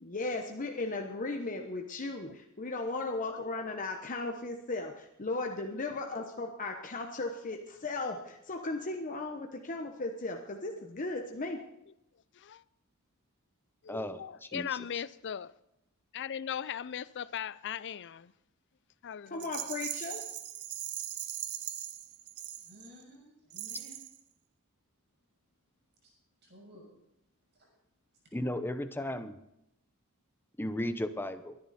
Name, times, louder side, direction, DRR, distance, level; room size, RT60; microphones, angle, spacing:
voice 1, 0.0-11.6 19.3-20.2, left 2 dB, 35° left, 1.1 m, -36 dB
voice 2, 5.7-6.0 11.6-11.7 12.3-12.6 13.8-15.5 16.1-18.3 19.0-19.7, left 8 dB, 55° left, 0.5 m, -39 dB
voice 3, 13.9-14.2 14.5-14.7 28.3-29.4 30.6-31.6, left 1 dB, 10° left, 0.9 m, -34 dB
Rattle, 19.4-23.0 23.5-24.2, right 12 dB, 85° right, 1.0 m, -40 dB
voice 4, 22.6-24.0 26.0-26.1 26.4-26.9 27.6-27.7 28.2-28.3, equal, 50° right, 6.7 m, -55 dB
23.5 x 10.5 x 4.3 m
head